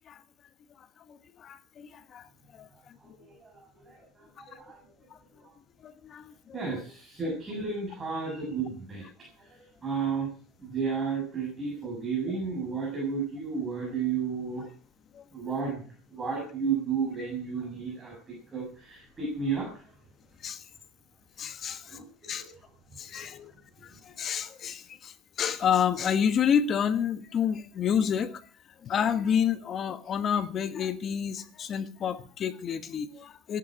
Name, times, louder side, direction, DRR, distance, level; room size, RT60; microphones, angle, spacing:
voice 1, 1.1-2.3 2.5-3.0 4.5-4.6 5.1-5.2 5.8-6.6 15.1-15.2 20.4-20.6 21.4-22.5 23.0-23.5 23.8-28.5 28.8-33.6, left 8 dB, 35° left, 1.3 m, -29 dB
voice 2, 3.0-4.8 5.4-5.5 6.5-9.1 9.4-10.3 10.6-14.7 15.3-19.9 21.9-22.5, right 5 dB, 20° right, 7.1 m, -33 dB
16.0 x 11.5 x 6.2 m
cardioid pair, 135°, 0 cm